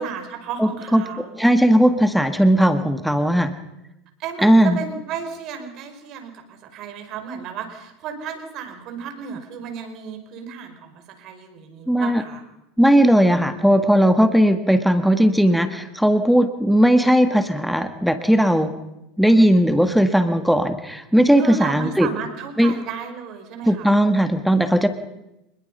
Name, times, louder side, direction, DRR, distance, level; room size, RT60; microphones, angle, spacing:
voice 1, 0.0-1.4 4.2-12.4 21.4-24.0, right 7 dB, 50° right, 6 dB, 5.1 m, -33 dB
voice 2, 0.6-1.0 1.4-3.5 4.4-4.8 11.9-12.2 12.8-18.7 19.2-22.1 22.6-22.7 23.7-24.9, equal, ahead, 9 dB, 1.7 m, -17 dB
26.0 x 21.0 x 5.6 m, 0.90 s
supercardioid pair, 110°, 0 cm